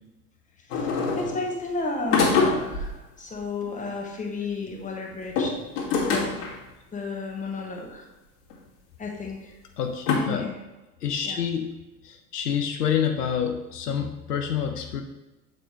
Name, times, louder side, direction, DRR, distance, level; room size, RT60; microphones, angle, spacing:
voice 1, 0.6-0.9 1.2-5.5 6.1-6.5 6.9-8.1 9.0-9.5 10.1-10.6 11.2-11.4, left 3 dB, 15° left, 0 dB, 1.3 m, -33 dB
sound 1, 0.7-1.5 2.1-2.9 5.2-6.6 7.6-7.7 8.5-8.6 10.1-10.2, left 4 dB, 45° left, 1.7 m, -24 dB
voice 2, 9.8-10.5 11.0-11.7 12.0-15.0, left 8 dB, 75° left, 4 dB, 0.7 m, -27 dB
7.6 x 5.0 x 3.1 m, 1.1 s
figure-of-eight pair, 75°, 47 cm